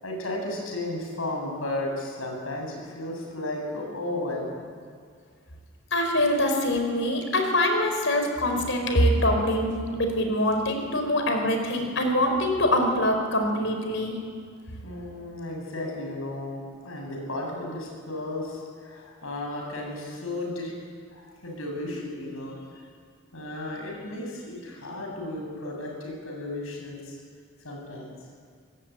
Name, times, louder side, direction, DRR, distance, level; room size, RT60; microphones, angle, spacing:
voice 1, 0.0-4.7 14.8-20.8 21.1-22.9 23.3-27.2 27.6-28.1, left 1 dB, 85° left, 0 dB, 7.8 m, -34 dB
voice 2, 5.9-14.2, left 1 dB, 65° left, 4 dB, 4.8 m, -24 dB
25.5 x 19.0 x 9.4 m, 2.1 s
head